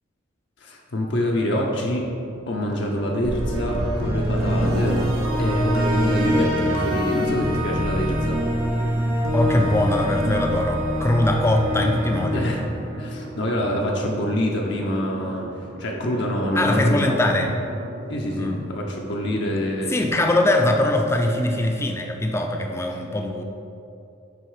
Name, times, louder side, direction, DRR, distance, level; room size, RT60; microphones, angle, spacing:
voice 1, 0.6-2.1 2.5-5.0 5.4-8.4 12.3-12.6 13.0-15.5 15.8-17.2 18.1-19.9, equal, 60° left, -1 dB, 0.7 m, -26 dB
sound 1, 1.9-3.7 4.2-9.8 10.8-10.9 11.1-20.0, right 2 dB, 55° right, 0.5 m, -40 dB
sound 2, 3.2-13.4, equal, 85° right, 1.0 m, -24 dB
voice 2, 9.3-12.5 16.5-17.6 18.4-18.6 19.9-23.4, left 1 dB, 15° left, 3 dB, 0.4 m, -21 dB
9.1 x 3.5 x 4.9 m, 2.7 s
head